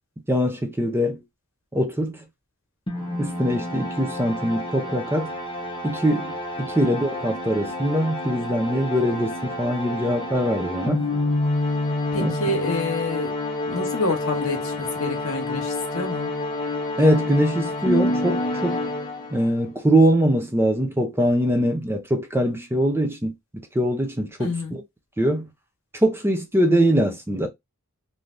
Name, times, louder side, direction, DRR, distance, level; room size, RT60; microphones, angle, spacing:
voice 1, 0.3-1.2 1.7-2.2 3.2-5.3 5.8-11.0 12.2-12.3 17.0-18.8 19.3-23.3 23.7-24.8 25.2-25.5 26.0-27.5, equal, 10° right, 0.5 m, -22 dB
sound 1, 2.9-19.6, left 2 dB, 20° left, 0.8 m, -28 dB
voice 2, 12.1-13.3 13.6-16.3 24.4-24.8, left 2 dB, 65° left, 1.1 m, -28 dB
3.3 x 2.7 x 2.5 m
head